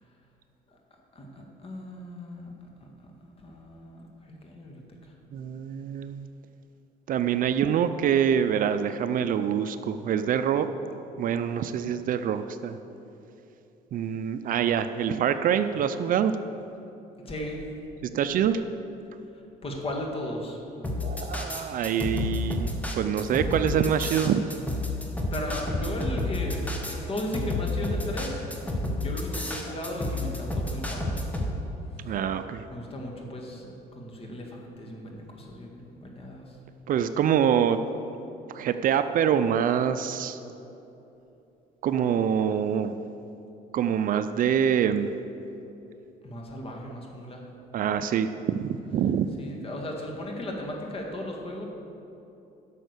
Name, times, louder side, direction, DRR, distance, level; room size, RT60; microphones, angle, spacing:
voice 1, 1.1-5.1 17.2-17.7 19.3-20.6 25.3-28.5 28.9-31.2 32.0-32.1 32.7-36.6 46.2-47.4 49.4-51.6, left 1 dB, 35° left, 0 dB, 2.0 m, -36 dB
voice 2, 5.3-6.3 7.1-10.7 11.2-12.8 13.9-16.3 18.0-18.6 21.0-24.4 32.0-32.6 36.9-37.8 38.5-40.4 41.8-43.0 43.7-45.1 47.7-49.3, right 8 dB, 55° right, 10 dB, 0.5 m, -25 dB
sound 1, 20.8-31.5, left 2 dB, 10° left, 1.4 m, -30 dB
11.0 x 6.4 x 6.7 m, 2.9 s
cardioid pair, 110°, 17 cm